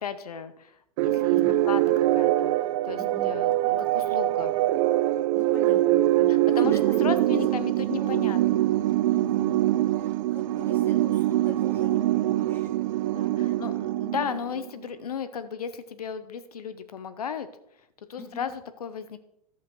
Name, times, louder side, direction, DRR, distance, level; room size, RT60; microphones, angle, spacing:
voice 1, 0.0-0.7 1.0-1.4 1.6-1.8 2.1-2.6 2.8-4.5 6.2-8.7 13.1-17.5 18.1-19.2, left 7 dB, 80° left, 12 dB, 0.8 m, -35 dB
sound 1, 1.0-14.7, right 14 dB, 60° right, 0.4 m, -24 dB
voice 2, 1.3-1.6 3.0-3.4 5.3-7.4 7.7-8.3 9.1-12.8 13.4-13.6 18.2-18.6, left 1 dB, 10° left, 0 dB, 2.2 m, -44 dB
14.0 x 5.7 x 3.1 m, 0.78 s
hypercardioid pair, 100°, 19 cm